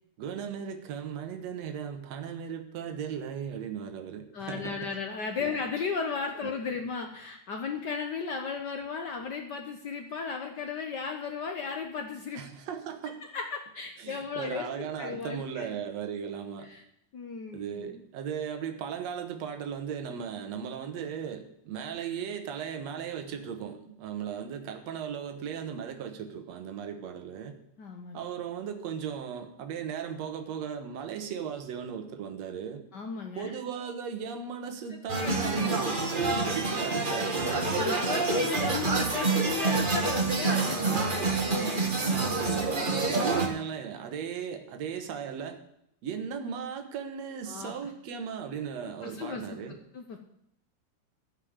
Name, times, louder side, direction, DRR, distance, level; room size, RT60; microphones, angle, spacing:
voice 1, 0.2-4.8 5.4-5.6 6.4-6.6 12.4-13.2 14.0-16.7 17.5-27.6 28.1-32.8 33.4-37.8 38.3-38.5 40.8-41.2 41.4-45.6 46.0-49.8, right 7 dB, 65° right, 6 dB, 2.5 m, -37 dB
voice 2, 4.3-12.4 13.3-15.7 16.7-16.8 17.1-18.0 27.8-28.2 32.9-33.5 35.2-35.8 37.4-41.0 41.5-41.8 47.5-47.9 48.8-49.6 49.9-50.2, left 5 dB, 85° left, 4 dB, 0.9 m, -35 dB
sound 1, 35.1-43.5, right 3 dB, 30° right, 0.9 m, -27 dB
15.0 x 5.6 x 8.9 m, 0.76 s
omnidirectional pair, 3.4 m